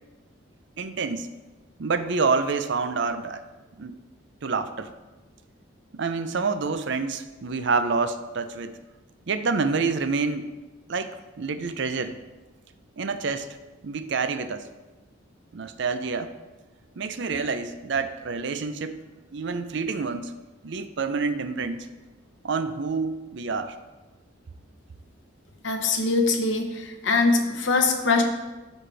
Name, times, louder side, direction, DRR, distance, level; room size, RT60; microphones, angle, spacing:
voice 1, 0.8-1.3 1.8-3.4 3.8-3.9 4.4-4.9 5.9-8.7 9.3-10.5 10.9-12.2 13.0-13.5 13.8-14.7 15.5-16.3 17.0-19.0 19.3-20.3 20.6-21.9 22.4-23.7, right 4 dB, 60° right, 10 dB, 0.5 m, -27 dB
voice 2, 25.6-28.2, left 3 dB, 60° left, 3 dB, 0.9 m, -22 dB
12.5 x 4.3 x 3.3 m, 1.2 s
head